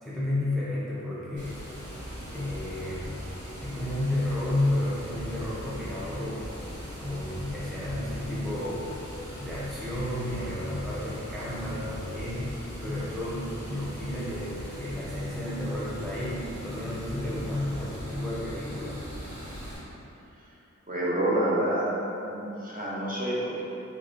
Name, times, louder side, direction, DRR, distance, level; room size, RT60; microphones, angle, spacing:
voice 1, 0.0-1.6 2.3-3.2 3.6-6.5 7.0-8.9 9.4-19.1, left 1 dB, ahead, -8 dB, 0.5 m, -32 dB
Water, 1.4-19.8, equal, 75° right, 1.4 m, -40 dB
voice 2, 20.9-21.9 22.2-23.7, right 1 dB, 30° right, -7 dB, 0.8 m, -28 dB
3.9 x 2.8 x 2.5 m, 2.9 s
wide cardioid pair, 65°, 29 cm